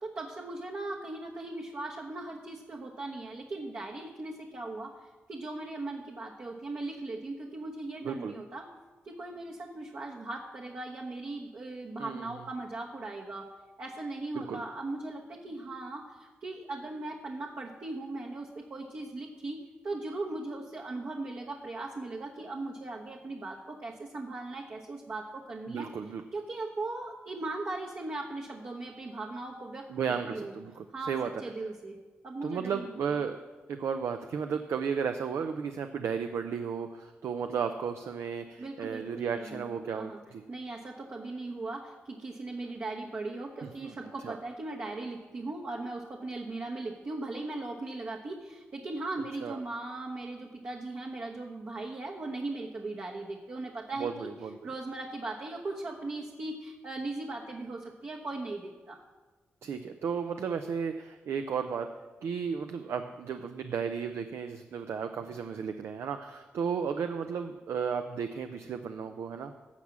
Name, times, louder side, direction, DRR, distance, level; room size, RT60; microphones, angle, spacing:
voice 1, 0.0-8.7 9.0-13.5 13.8-25.9 26.3-30.5 30.9-32.0 32.2-32.9 38.6-40.2 40.5-54.3 54.6-59.0, right 2 dB, 55° right, -1 dB, 1.1 m, -38 dB
voice 2, 8.0-8.3 12.0-12.3 14.3-14.6 25.7-26.2 29.9-31.3 32.4-33.4 33.7-40.4 43.8-43.9 44.2-44.4 49.4-49.6 54.0-54.6 59.6-61.9 62.2-69.5, right 6 dB, 75° right, 7 dB, 0.5 m, -34 dB
9.7 x 5.9 x 7.4 m, 1.3 s
supercardioid pair, 50°, 5 cm